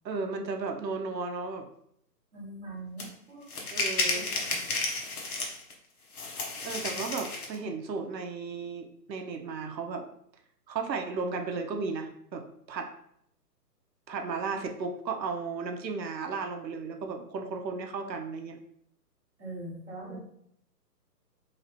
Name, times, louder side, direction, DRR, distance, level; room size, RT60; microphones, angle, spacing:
voice 1, 0.0-1.7 3.7-4.3 6.6-10.0 10.7-12.9 14.1-18.6 20.1-20.2, right 4 dB, 85° right, 4 dB, 0.8 m, -34 dB
voice 2, 2.3-3.5 4.1-4.5 19.4-20.2, right 2 dB, 10° right, -13 dB, 0.9 m, -42 dB
sound 1, 3.0-3.1 3.5-5.7 6.1-7.6, left 3 dB, 60° left, 1.0 m, -32 dB
3.1 x 2.9 x 2.9 m, 0.71 s
hypercardioid pair, 165°, 50 cm